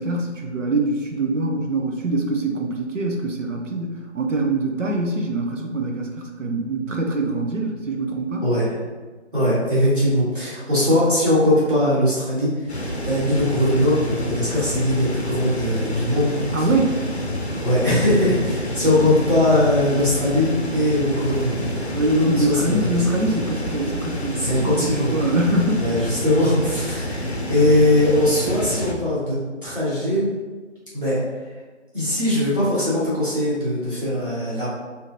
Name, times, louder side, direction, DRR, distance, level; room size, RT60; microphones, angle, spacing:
voice 1, 0.0-8.5 16.5-17.0 21.9-26.0, right 2 dB, 80° right, 2 dB, 0.7 m, -24 dB
voice 2, 9.3-16.3 16.6-16.7 17.6-21.6 22.3-23.0 24.3-25.3 25.8-30.3 30.9-31.2 31.9-34.7, left 1 dB, 45° right, -10 dB, 1.4 m, -20 dB
sound 1, 12.7-28.9, left 1 dB, 60° left, 0.6 m, -28 dB
3.5 x 2.7 x 2.7 m, 1.4 s
figure-of-eight pair, 180°, 37 cm